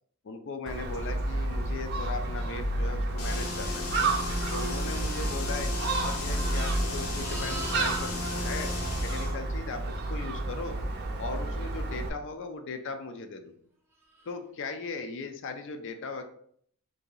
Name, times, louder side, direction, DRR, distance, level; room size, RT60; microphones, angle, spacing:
voice 1, 0.2-3.9 4.5-8.7 9.0-10.8 11.2-13.5 14.3-16.2, left 4 dB, 60° left, 6 dB, 0.4 m, -38 dB
Gull seagull, 0.7-12.1, right 2 dB, 50° right, 0.5 m, -31 dB
sound 1, 3.2-9.3, left 3 dB, 85° left, 0.9 m, -36 dB
Livestock farm animals working animals, 7.1-9.8 14.1-14.3, right 2 dB, 10° right, 0.7 m, -43 dB
2.9 x 2.7 x 3.8 m, 0.63 s
head